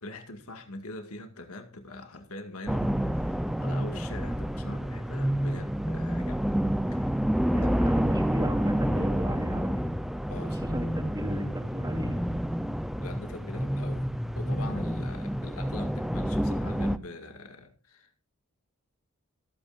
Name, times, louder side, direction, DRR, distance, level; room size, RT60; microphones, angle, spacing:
voice 1, 0.0-6.5 6.9-7.1 7.5-7.7 10.3-10.8 13.0-14.0 14.4-18.2, left 2 dB, 85° left, 6 dB, 2.0 m, -42 dB
sound 1, 2.7-17.0, equal, ahead, 0.5 m, -29 dB
voice 2, 7.5-9.7 10.4-12.2, right 1 dB, 20° right, 3 dB, 2.5 m, -35 dB
26.0 x 9.1 x 2.5 m, 0.30 s
head